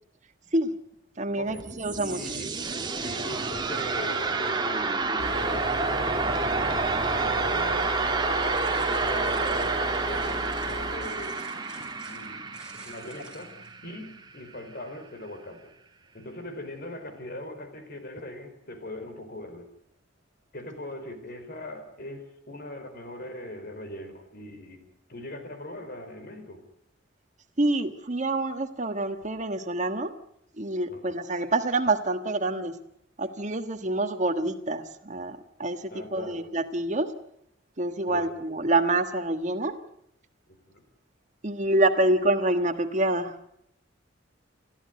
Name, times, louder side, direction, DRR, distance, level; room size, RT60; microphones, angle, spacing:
voice 1, 1.2-2.2 27.6-30.1 30.6-32.8 33.2-37.1 37.8-39.8 41.4-43.4, right 2 dB, 40° right, 8 dB, 1.4 m, -27 dB
sound 1, 1.3-14.2, right 3 dB, 25° right, 2.0 m, -29 dB
voice 2, 2.1-2.5 3.0-5.0 5.3-6.2 7.1-8.0 8.4-11.4 12.0-12.4 12.8-13.5 13.8-15.7 16.1-19.7 20.5-24.8 25.1-26.6 30.9-31.2 35.9-36.5 38.1-38.3 40.5-40.8, left 1 dB, 55° left, 7 dB, 4.5 m, -40 dB
Engine, 5.2-11.0, equal, 35° left, 7.5 m, -38 dB
sound 2, 8.4-13.7, right 2 dB, 5° right, 5.4 m, -50 dB
29.5 x 14.0 x 9.4 m, 0.76 s
head